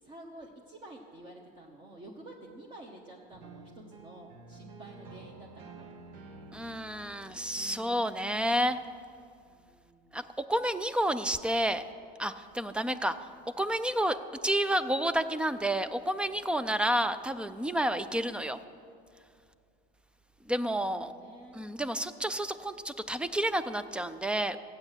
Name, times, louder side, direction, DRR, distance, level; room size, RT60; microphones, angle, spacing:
voice 1, 0.0-6.0 9.4-10.3 16.4-16.7 20.6-21.6, right 1 dB, 25° right, -1 dB, 1.1 m, -50 dB
sound 1, 3.3-8.7, right 3 dB, 65° right, 1.5 m, -50 dB
voice 2, 6.5-8.8 10.1-11.8 12.2-13.2 13.6-14.2 14.4-18.6 20.5-21.1 21.5-24.6, right 1 dB, 5° right, 12 dB, 0.3 m, -30 dB
15.5 x 8.9 x 7.3 m, 2.3 s
cardioid pair, 155°, 20 cm